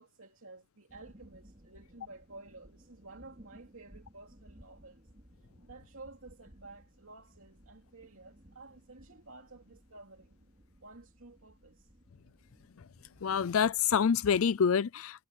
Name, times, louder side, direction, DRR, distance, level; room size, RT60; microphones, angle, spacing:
voice 1, 0.0-5.1 5.6-10.4 10.8-11.9, right 3 dB, 75° right, 2.8 m, -52 dB
sound 1, 0.9-14.0, equal, 35° right, 3.3 m, -59 dB
voice 2, 13.2-15.3, left 7 dB, 75° left, 0.4 m, -27 dB
head